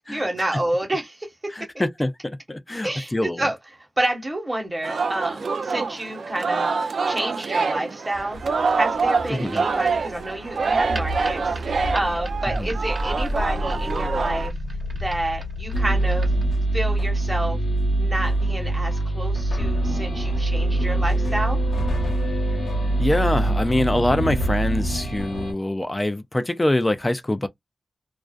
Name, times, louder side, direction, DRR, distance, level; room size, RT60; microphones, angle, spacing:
voice 1, 0.1-1.5 2.8-8.4 8.7-14.5 14.9-16.3 16.7-17.6 18.0-21.6, right 1 dB, 25° right, 1.1 m, -29 dB
voice 2, 1.6-3.4 9.3-9.6 12.5-12.8 23.0-27.5, left 1 dB, 20° left, 0.4 m, -24 dB
Singing, 4.8-14.5, right 4 dB, 80° right, 0.3 m, -26 dB
sound 1, 8.1-16.5, equal, 50° right, 1.0 m, -31 dB
sound 2, 15.7-25.5, right 1 dB, 85° left, 0.9 m, -23 dB
2.4 x 2.3 x 2.3 m
cardioid pair, 65°, 0 cm